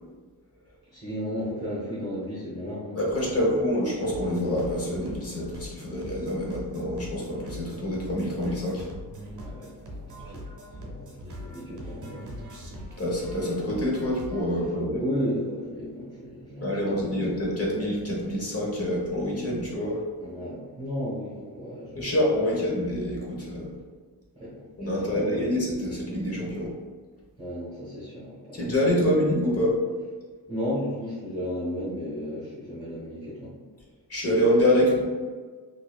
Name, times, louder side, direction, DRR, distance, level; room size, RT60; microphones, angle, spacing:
voice 1, 0.9-3.7 9.4-12.3 14.6-17.4 20.2-22.6 24.3-24.7 24.9-25.5 27.4-29.2 30.5-33.5, equal, 15° right, -10 dB, 1.1 m, -35 dB
voice 2, 2.9-8.8 13.0-15.0 16.6-20.0 21.9-23.7 24.8-26.7 28.5-29.8 34.1-35.0, left 1 dB, 35° left, -4 dB, 0.9 m, -26 dB
sound 1, 4.0-14.4, equal, 45° right, 0.8 m, -42 dB
4.1 x 2.6 x 2.3 m, 1.5 s
wide cardioid pair, 115°, 41 cm